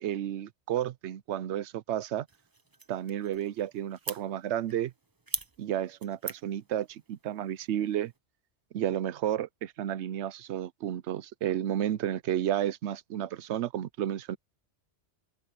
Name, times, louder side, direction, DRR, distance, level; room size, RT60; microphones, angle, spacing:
voice 1, 0.0-2.3 2.9-4.9 5.6-8.1 8.7-14.4, right 11 dB, 75° right, 0.9 m, -32 dB
sound 1, 2.3-8.2, right 3 dB, 20° right, 0.8 m, -43 dB
open air
omnidirectional pair, 1.2 m